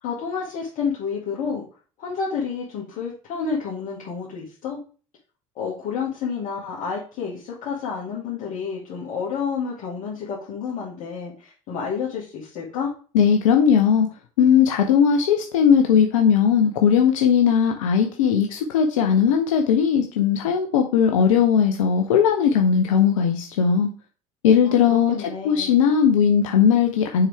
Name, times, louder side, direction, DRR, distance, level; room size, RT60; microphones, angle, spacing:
voice 1, 0.0-1.6 2.0-4.8 5.6-12.9 24.6-25.7, left 6 dB, 55° left, -5 dB, 1.9 m, -30 dB
voice 2, 13.1-14.1 14.4-23.9 24.4-27.3, left 7 dB, 75° left, 3 dB, 0.8 m, -18 dB
7.2 x 4.8 x 3.5 m, 0.39 s
hypercardioid pair, 65°, 17 cm